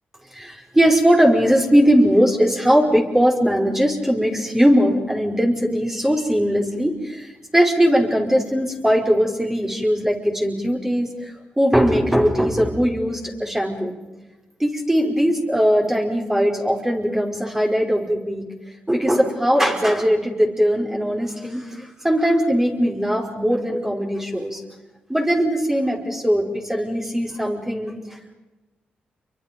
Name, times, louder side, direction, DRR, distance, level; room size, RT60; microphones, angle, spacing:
voice 1, 0.3-11.3 11.6-13.9 14.6-18.5 18.9-24.6 25.1-28.3, equal, 10° right, 0 dB, 5.2 m, -20 dB
28.5 x 24.5 x 5.4 m, 1.1 s
cardioid pair, 70°, 4 cm